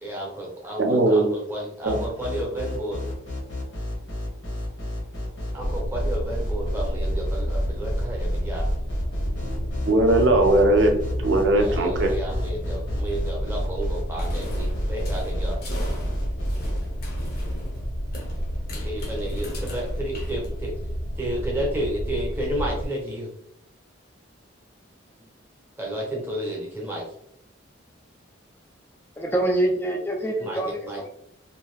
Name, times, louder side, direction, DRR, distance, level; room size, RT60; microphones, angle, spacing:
voice 1, 0.0-3.0 5.5-8.7 11.6-15.6 18.7-20.7 21.2-23.3 25.8-27.1 30.4-30.6 30.9-31.1, right 1 dB, 10° right, -2 dB, 0.7 m, -32 dB
voice 2, 0.8-1.3 1.8-2.0 9.8-10.9 11.2-12.1, right 2 dB, 65° right, 4 dB, 0.6 m, -19 dB
sound 1, 1.8-16.8, equal, 65° left, 1.0 m, -30 dB
sound 2, 5.6-22.9, equal, 90° left, 0.7 m, -30 dB
sound 3, 14.2-20.9, left 1 dB, 50° left, 0.7 m, -41 dB
voice 3, 29.2-31.1, right 1 dB, 10° left, 1 dB, 0.4 m, -25 dB
2.7 x 2.4 x 3.1 m, 0.71 s
head